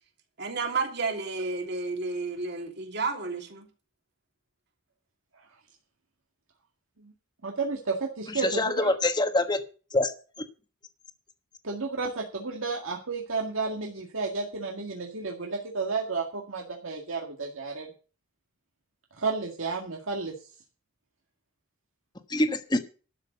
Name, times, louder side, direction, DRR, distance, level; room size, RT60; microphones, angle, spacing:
voice 1, 0.4-3.7, right 4 dB, 55° right, 2.9 m, -31 dB
voice 2, 7.4-8.9 11.6-17.9 19.2-20.3, right 4 dB, 80° right, 1.9 m, -32 dB
voice 3, 8.4-9.6 9.9-10.1 22.3-22.8, left 2 dB, 20° left, 1.3 m, -25 dB
12.5 x 6.5 x 7.9 m
head